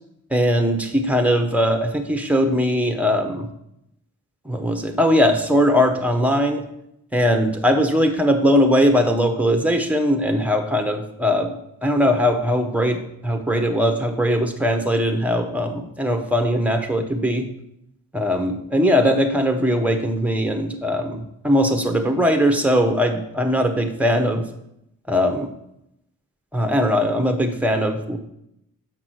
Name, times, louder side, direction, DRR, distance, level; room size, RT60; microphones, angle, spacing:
voice 1, 0.3-3.5 4.4-6.6 7.1-11.6 11.8-17.5 18.1-24.4 25.1-25.5 26.5-28.2, equal, 5° right, 5 dB, 1.1 m, -20 dB
6.7 x 6.0 x 6.3 m, 0.79 s
wide cardioid pair, 110°, 32 cm